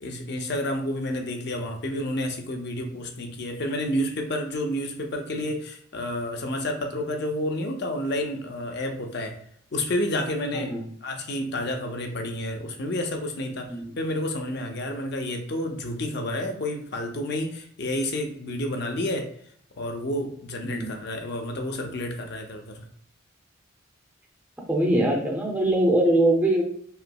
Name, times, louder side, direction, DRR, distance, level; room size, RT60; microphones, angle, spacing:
voice 1, 0.0-9.3 9.7-10.7 11.0-19.3 19.8-22.8, left 1 dB, 55° left, 3 dB, 0.6 m, -30 dB
voice 2, 24.7-26.6, right 1 dB, 10° right, -1 dB, 0.5 m, -22 dB
5.4 x 2.0 x 2.2 m, 0.64 s
head